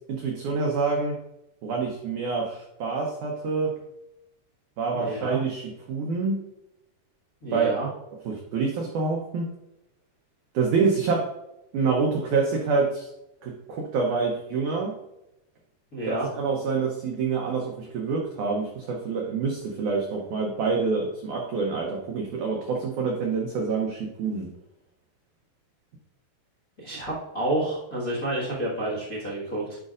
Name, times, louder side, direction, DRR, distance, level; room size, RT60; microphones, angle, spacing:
voice 1, 0.1-1.2 1.6-3.7 4.8-6.4 7.5-7.7 8.3-9.5 10.5-11.3 11.7-13.1 13.4-14.9 16.1-24.5, right 4 dB, 80° right, 0 dB, 1.7 m, -26 dB
voice 2, 4.9-5.4 7.4-7.9 15.9-16.3 26.8-29.8, right 1 dB, 45° left, -7 dB, 1.1 m, -29 dB
10.5 x 5.2 x 2.5 m, 0.88 s
omnidirectional pair, 4.6 m